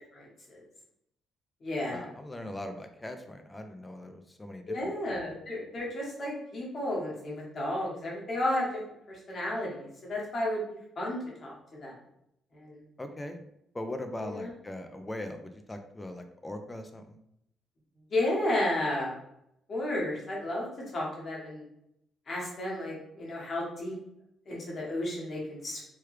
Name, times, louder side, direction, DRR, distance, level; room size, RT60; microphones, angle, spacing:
voice 1, 0.1-0.6 1.6-2.1 4.7-8.8 9.1-10.6 11.0-11.9 12.5-12.8 14.2-14.5 18.1-19.1 19.7-20.7 20.9-21.6 22.3-23.9 24.5-25.8, left 1 dB, 45° left, -4 dB, 1.3 m, -33 dB
voice 2, 1.9-4.9 13.0-13.4 13.7-17.2, left 1 dB, 20° left, 6 dB, 0.4 m, -40 dB
3.2 x 2.2 x 3.2 m, 0.78 s
cardioid pair, 90°, 0 cm